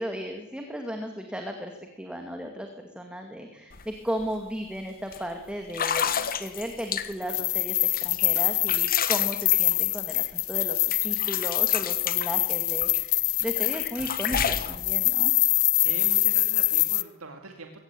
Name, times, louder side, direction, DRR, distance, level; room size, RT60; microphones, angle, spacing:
voice 1, 0.0-2.7 2.9-7.8 8.0-15.3, equal, 5° right, 4 dB, 2.3 m, -35 dB
sound 1, 3.7-3.8 4.2-4.5 5.1-5.2 5.7-7.4 7.9-10.6 10.9-13.0 13.4-14.8, left 8 dB, 45° left, 1.5 m, -31 dB
sound 2, 7.2-17.0, left 19 dB, 75° left, 0.9 m, -25 dB
sound 3, 10.0-10.7 11.0-11.1 11.8-11.9 12.7-12.9 13.3-13.4 14.0-15.1, right 1 dB, 45° right, 5.0 m, -38 dB
voice 2, 15.8-17.8, right 3 dB, 80° right, 4 dB, 2.4 m, -41 dB
22.0 x 17.0 x 9.2 m, 1.1 s
head